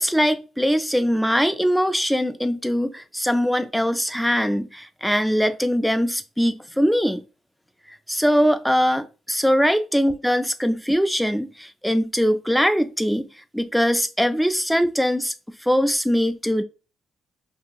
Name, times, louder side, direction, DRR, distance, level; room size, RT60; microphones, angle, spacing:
voice 1, 0.0-7.2 8.1-13.3 13.5-16.6, equal, ahead, 0.3 m, -21 dB
2.7 x 2.7 x 2.3 m
cardioid pair, 90°, 0 cm